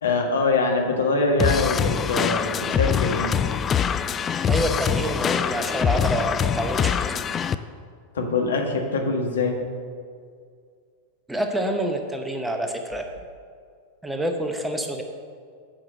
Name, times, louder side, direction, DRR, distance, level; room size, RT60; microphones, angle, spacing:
voice 1, 0.0-3.3 8.1-9.6, left 3 dB, 65° left, 2 dB, 1.5 m, -23 dB
sound 1, 1.4-7.6, left 8 dB, 25° left, 0.4 m, -24 dB
voice 2, 4.5-7.2 11.3-13.1 14.0-15.0, right 1 dB, 5° right, 4 dB, 1.0 m, -27 dB
8.9 x 5.9 x 7.7 m, 2.1 s
figure-of-eight pair, 90°, 0 cm